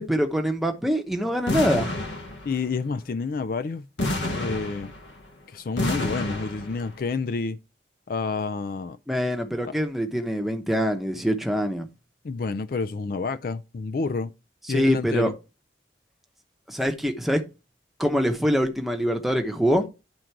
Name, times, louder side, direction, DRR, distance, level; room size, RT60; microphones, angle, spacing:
voice 1, 0.0-1.9 9.1-11.9 14.7-15.3 16.7-17.4 18.0-19.9, equal, ahead, 0.8 m, -24 dB
sound 1, 1.5-2.7 4.0-5.2 5.8-6.9, left 1 dB, 75° left, 1.4 m, -29 dB
voice 2, 2.5-3.9 4.3-4.9 5.5-7.6 8.1-9.0 12.2-14.3 14.7-15.3, left 4 dB, 50° left, 0.4 m, -29 dB
10.5 x 3.8 x 4.6 m
head